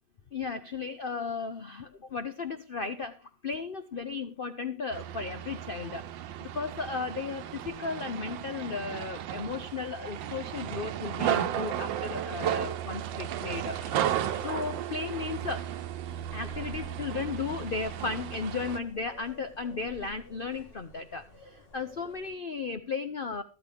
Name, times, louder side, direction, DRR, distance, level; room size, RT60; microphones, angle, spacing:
voice 1, 0.3-6.1 6.4-13.8 14.4-15.7 16.3-23.4, left 4 dB, 90° left, 9 dB, 0.4 m, -35 dB
sound 1, 4.9-18.8, right 11 dB, 75° right, 1.5 m, -34 dB
sound 2, 12.8-22.4, equal, 30° left, 1.8 m, -53 dB
13.0 x 13.0 x 3.5 m, 0.34 s
omnidirectional pair, 2.1 m